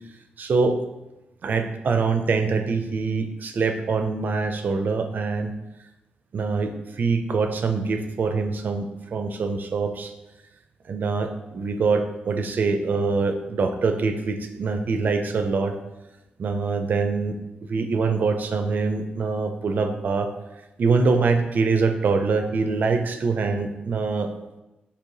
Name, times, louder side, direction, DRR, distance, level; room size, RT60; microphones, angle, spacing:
voice 1, 0.4-0.8 1.4-5.5 6.3-10.1 10.9-15.8 16.4-17.4 17.7-20.3 20.8-24.3, right 4 dB, 60° right, 6 dB, 0.5 m, -24 dB
4.7 x 2.9 x 3.9 m, 0.99 s
cardioid pair, 90°, 4 cm